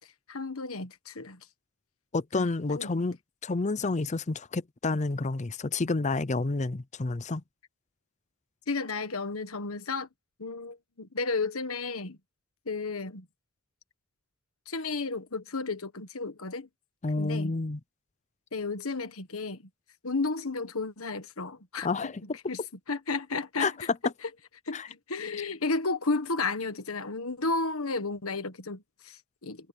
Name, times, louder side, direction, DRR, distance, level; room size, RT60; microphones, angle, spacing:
voice 1, 0.3-1.4 2.3-2.9 8.7-10.1 10.4-12.2 12.6-13.2 14.7-16.7 17.2-17.5 18.5-19.7 20.0-22.1 22.5-22.6 22.9-23.7 24.7-29.7, left 3 dB, 70° left, 1.5 m, -33 dB
voice 2, 2.1-3.2 3.4-7.4 17.0-17.8 21.8-22.2 23.6-23.7 24.7-24.9, left 3 dB, 30° left, 0.6 m, -29 dB
head